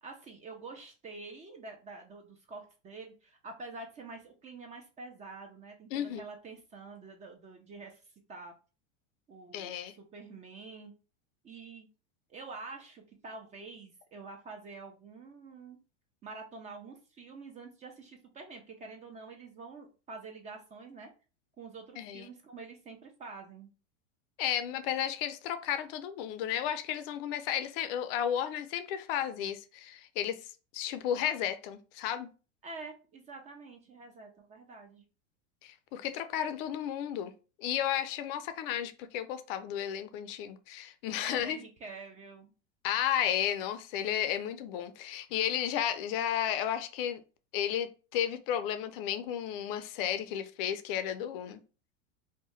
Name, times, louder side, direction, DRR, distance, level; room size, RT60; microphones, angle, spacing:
voice 1, 0.0-8.6 9.3-10.9 11.4-11.9 12.3-15.8 16.2-21.1 21.6-23.7 32.6-35.0 41.2-42.5, right 3 dB, 20° right, 0.4 m, -47 dB
voice 2, 5.9-6.2 9.5-9.9 22.0-22.3 24.4-30.4 30.7-32.3 35.6-37.3 37.6-41.6 42.8-47.2 47.5-51.6, left 10 dB, 50° left, 0.4 m, -33 dB
2.7 x 2.1 x 3.1 m
hypercardioid pair, 115°, 36 cm